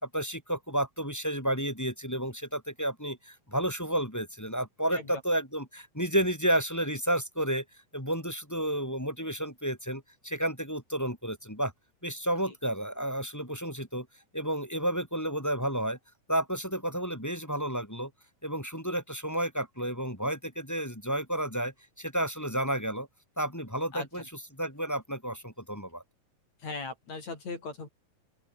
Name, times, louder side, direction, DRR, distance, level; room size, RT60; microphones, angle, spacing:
voice 1, 0.0-7.6 7.9-11.7 12.0-14.1 14.3-16.0 16.3-18.1 18.4-23.1 23.4-26.0, right 1 dB, 5° left, 3.1 m, -31 dB
voice 2, 23.9-24.3 26.6-27.9, left 3 dB, 55° left, 6.2 m, -39 dB
open air
omnidirectional pair, 3.9 m